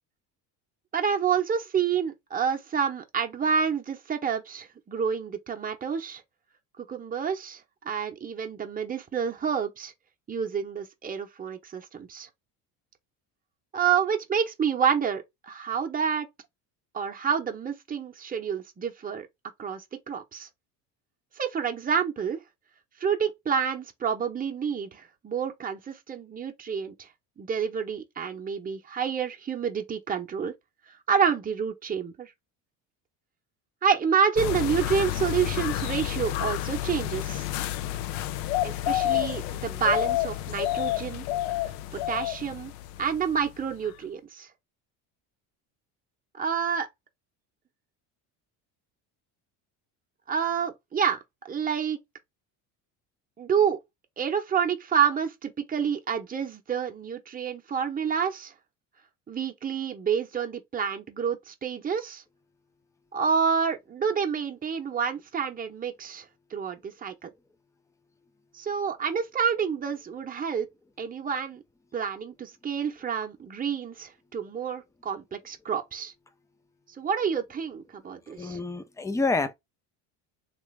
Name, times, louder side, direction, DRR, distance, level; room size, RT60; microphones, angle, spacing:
voice 1, 0.9-6.2 6.8-7.6 7.8-9.9 10.3-12.3 13.7-16.3 16.9-19.3 19.6-19.8 20.1-20.5 21.4-22.4 23.0-26.9 27.4-30.5 31.1-32.3 33.8-37.4 38.6-41.2 41.9-42.7 43.0-44.5 46.4-46.9 50.3-51.2 51.4-52.0 53.4-53.8 54.2-58.5 59.3-62.2 63.1-66.2 66.5-67.3 68.5-70.7 71.0-71.6 71.9-76.1 77.0-78.6, right 7 dB, 20° right, 0.8 m, -28 dB
sound 1, 34.4-43.6 43.9-44.0, left 14 dB, 85° left, 0.5 m, -30 dB
voice 2, 78.4-79.5, left 3 dB, 10° left, 0.3 m, -28 dB
3.2 x 2.4 x 3.2 m
cardioid pair, 110°, 42 cm